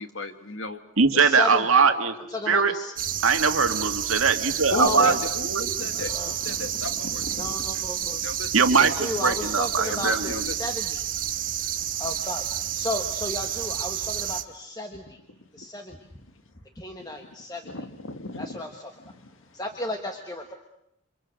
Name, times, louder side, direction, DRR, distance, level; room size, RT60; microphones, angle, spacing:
voice 1, 0.0-0.8 4.7-8.7 9.8-10.6 15.9-16.0 17.2-17.3 17.6-19.4, left 3 dB, 65° left, 8 dB, 1.8 m, -35 dB
voice 2, 1.0-2.2 2.5-2.7 3.2-5.2 5.4-5.7 8.5-10.5, right 5 dB, 70° right, 6 dB, 2.1 m, -21 dB
voice 3, 2.3-2.9 4.7-5.0 6.0-6.3 7.4-8.2 9.0-11.0 12.0-12.4 12.8-15.0 15.6-16.0 16.8-17.6 18.4-18.7 19.5-20.5, left 2 dB, 15° left, 4 dB, 1.4 m, -33 dB
sound 1, 3.0-14.4, right 10 dB, 40° right, 1.1 m, -30 dB
28.5 x 25.5 x 6.5 m, 0.79 s
head